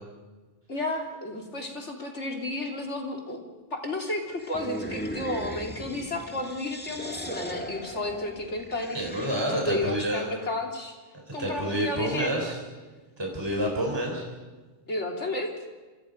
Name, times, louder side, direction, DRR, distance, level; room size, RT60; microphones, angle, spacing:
voice 1, 0.7-3.4 3.7-9.0 9.5-11.0 11.3-12.4 14.9-15.6, left 2 dB, 70° left, 2 dB, 3.5 m, -32 dB
sound 1, 4.4-9.9, equal, 10° left, 1.8 m, -38 dB
voice 2, 8.9-10.3 11.4-12.6 13.2-14.2, right 1 dB, 20° right, 0 dB, 3.9 m, -28 dB
27.0 x 26.0 x 5.2 m, 1.3 s
omnidirectional pair, 1.2 m